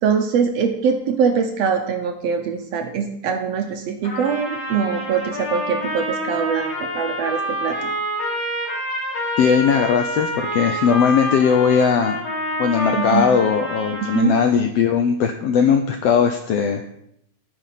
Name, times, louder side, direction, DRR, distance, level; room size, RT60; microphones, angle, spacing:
voice 1, 0.0-7.9 13.0-13.3 14.0-14.3, right 6 dB, 75° right, 6 dB, 1.6 m, -23 dB
Trumpet, 4.0-14.5, equal, 55° left, 4.0 m, -27 dB
voice 2, 9.4-12.2 12.6-16.9, left 6 dB, 85° left, 6 dB, 1.4 m, -18 dB
13.0 x 5.2 x 5.7 m, 0.76 s
omnidirectional pair, 3.5 m